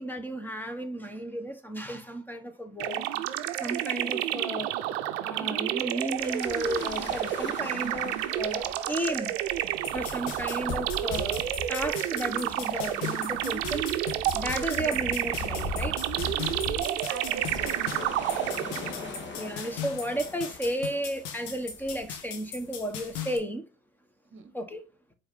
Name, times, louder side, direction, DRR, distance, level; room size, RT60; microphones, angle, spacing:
voice 1, 0.0-3.0 3.6-4.7 5.2-9.3 9.9-16.0 19.4-23.6 24.5-24.8, right 1 dB, 5° left, 1.3 m, -33 dB
sound 1, 2.8-19.2, right 13 dB, 75° right, 0.7 m, -30 dB
sound 2, 6.2-23.2, left 3 dB, 30° left, 1.6 m, -41 dB
sound 3, 9.8-23.4, left 8 dB, 70° left, 1.6 m, -40 dB
voice 2, 16.8-18.6 24.3-24.6, right 7 dB, 35° right, 1.3 m, -42 dB
4.7 x 4.3 x 5.3 m
hypercardioid pair, 80°, 36 cm